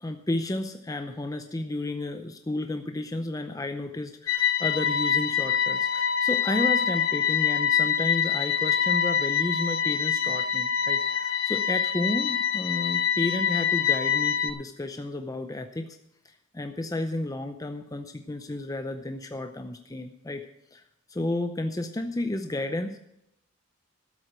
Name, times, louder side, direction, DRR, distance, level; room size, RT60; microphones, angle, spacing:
voice 1, 0.0-16.0 16.5-20.8 21.1-23.0, left 2 dB, 20° left, 6 dB, 0.6 m, -32 dB
sound 1, 4.3-14.5, left 8 dB, 70° left, 0.7 m, -25 dB
13.5 x 7.9 x 6.1 m, 0.80 s
head